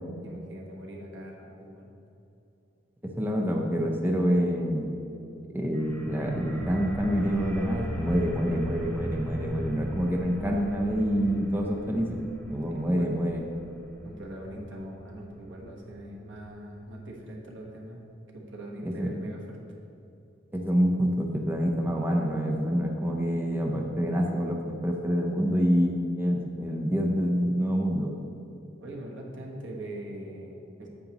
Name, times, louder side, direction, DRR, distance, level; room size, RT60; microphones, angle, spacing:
voice 1, 0.2-1.9 12.7-13.2 14.0-18.0 18.3-19.6 28.8-30.9, right 1 dB, 85° right, -1 dB, 1.3 m, -42 dB
voice 2, 3.2-5.0 5.5-12.2 12.5-13.5 18.8-19.1 20.5-28.1, equal, 10° right, 0 dB, 0.6 m, -27 dB
sound 1, 5.7-17.2, equal, 10° left, 1.0 m, -39 dB
9.3 x 8.0 x 3.0 m, 2.7 s
head